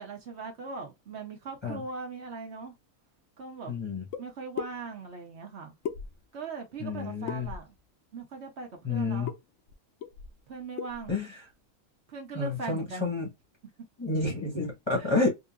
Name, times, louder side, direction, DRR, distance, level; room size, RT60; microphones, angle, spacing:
voice 1, 0.0-2.7 3.4-3.7 4.2-5.7 6.3-7.7 8.1-9.3 10.5-11.2 12.1-13.1 15.0-15.1, right 4 dB, 55° right, 1.0 m, -40 dB
voice 2, 3.7-4.0 6.8-7.5 8.8-9.3 11.1-11.3 12.3-13.3 14.0-15.3, left 3 dB, 25° left, 0.8 m, -29 dB
sound 1, 4.1-4.2 4.6-4.7 5.8-6.4 7.3-7.8 9.3-9.4 9.7-9.8 10.0-10.4 10.8-11.1, left 7 dB, 70° left, 0.9 m, -37 dB
3.7 x 2.5 x 2.3 m
omnidirectional pair, 1.5 m